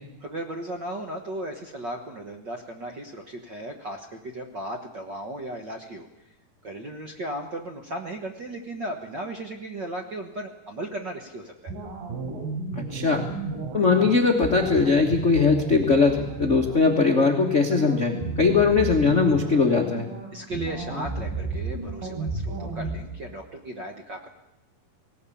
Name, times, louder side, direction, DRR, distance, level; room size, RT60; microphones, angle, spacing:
voice 1, 0.2-6.1 6.6-11.7 20.3-24.3, right 1 dB, 55° right, 4 dB, 1.3 m, -36 dB
sound 1, 11.7-23.0, right 3 dB, 70° right, 5.4 m, -33 dB
voice 2, 12.7-13.2 13.7-20.1, left 4 dB, 85° left, 2 dB, 0.6 m, -20 dB
18.5 x 18.5 x 8.5 m, 0.91 s
omnidirectional pair, 4.0 m